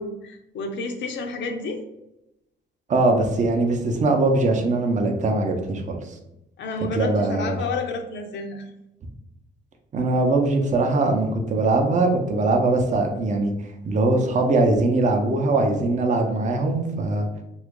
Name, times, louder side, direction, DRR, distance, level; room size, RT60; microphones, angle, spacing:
voice 1, 0.0-1.8 6.6-8.6, left 3 dB, 65° left, 4 dB, 0.5 m, -30 dB
voice 2, 2.9-6.0 6.9-7.6 9.9-13.5 13.8-17.3, right 2 dB, 40° right, 4 dB, 0.6 m, -21 dB
2.9 x 2.4 x 3.6 m, 0.88 s
cardioid pair, 90°, 20 cm